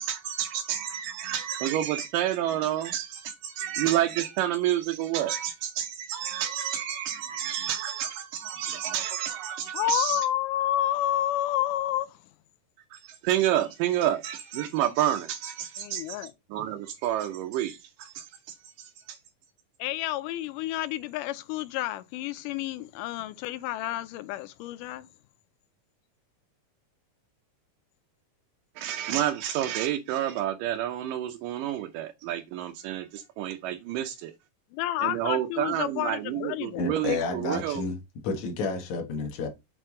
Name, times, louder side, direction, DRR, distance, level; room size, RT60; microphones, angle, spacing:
voice 1, 0.0-10.3 12.9-19.2 28.8-34.3 35.0-37.8, right 11 dB, 90° right, 2.3 m, -29 dB
voice 2, 9.7-12.2 15.8-16.3 19.8-25.1 30.4-30.5 34.7-36.9, left 13 dB, 80° left, 2.1 m, -30 dB
voice 3, 36.7-38.0 38.2-39.5, left 4 dB, 65° left, 2.6 m, -30 dB
6.6 x 4.5 x 3.8 m
omnidirectional pair, 3.8 m